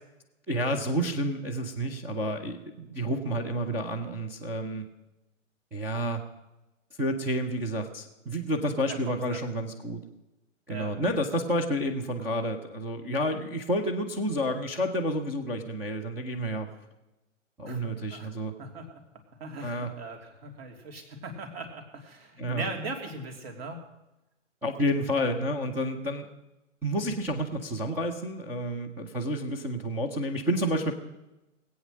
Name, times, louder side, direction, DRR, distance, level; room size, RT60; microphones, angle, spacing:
voice 1, 0.5-4.9 5.7-6.2 7.0-10.0 10.7-16.7 17.6-18.5 19.6-19.9 22.4-22.7 24.6-26.3 26.8-30.9, equal, 5° right, 0 dB, 0.5 m, -30 dB
voice 2, 9.1-9.4 10.7-10.9 17.6-18.3 18.6-19.0 19.4-23.8, right 2 dB, 50° right, 3 dB, 3.0 m, -39 dB
20.0 x 8.5 x 6.4 m, 0.97 s
figure-of-eight pair, 125°, 38 cm